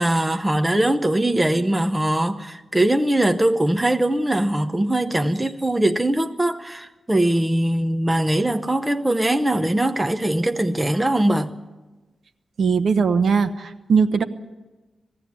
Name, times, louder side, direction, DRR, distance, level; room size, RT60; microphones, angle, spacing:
voice 1, 0.0-11.6, right 1 dB, 10° right, 0.7 m, -21 dB
voice 2, 12.6-14.2, right 5 dB, 65° right, 1.0 m, -19 dB
20.0 x 16.0 x 9.5 m
wide cardioid pair, 150°, 0 cm